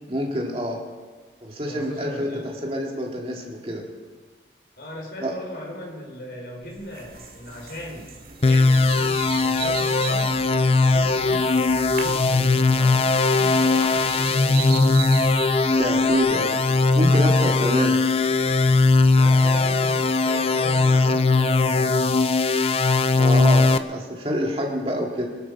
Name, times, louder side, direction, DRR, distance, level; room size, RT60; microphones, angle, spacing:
voice 1, 0.1-0.8 1.4-3.8 5.2-5.3 15.8-16.6 16.9-18.0 23.2-25.3, equal, 30° right, 0 dB, 2.4 m, -27 dB
voice 2, 1.6-2.5 4.8-8.1 8.4-15.3 19.1-21.9, left 1 dB, 60° left, 0 dB, 4.2 m, -38 dB
sound 1, 6.6-16.6, right 6 dB, 55° right, 2.1 m, -38 dB
sound 2, 8.4-23.8, left 3 dB, 35° left, 0.5 m, -19 dB
22.0 x 11.5 x 4.8 m, 1.4 s
head